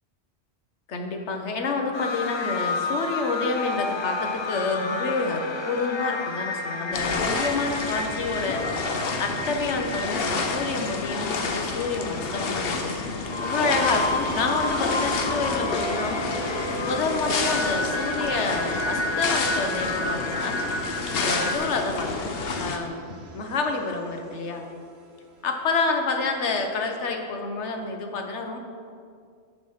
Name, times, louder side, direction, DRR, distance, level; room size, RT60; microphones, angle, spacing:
voice 1, 0.9-8.9 9.2-13.1 13.4-16.2 16.8-20.6 21.1-22.1 22.6-24.7 25.4-28.6, left 3 dB, 90° left, 4 dB, 1.2 m, -28 dB
sound 1, 1.9-21.6, left 3 dB, 35° left, 0.5 m, -31 dB
sound 2, 6.9-22.8, left 4 dB, 60° left, 1.0 m, -30 dB
sound 3, 13.6-26.5, right 4 dB, 70° right, 1.2 m, -39 dB
6.9 x 6.6 x 5.6 m, 2.3 s
omnidirectional pair, 1.1 m